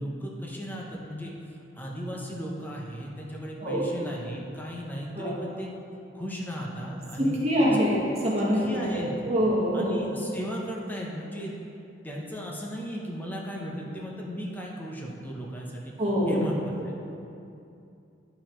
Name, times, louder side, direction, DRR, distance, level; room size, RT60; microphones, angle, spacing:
voice 1, 0.0-1.3 1.7-5.7 6.1-7.4 7.6-7.8 8.4-9.1 9.7-11.5 12.0-15.9 16.3-16.9, equal, 10° left, -3 dB, 1.0 m, -36 dB
voice 2, 7.2-9.0 9.2-10.2 16.0-16.4, equal, 35° right, -6 dB, 1.5 m, -25 dB
11.0 x 4.7 x 4.5 m, 2.6 s
head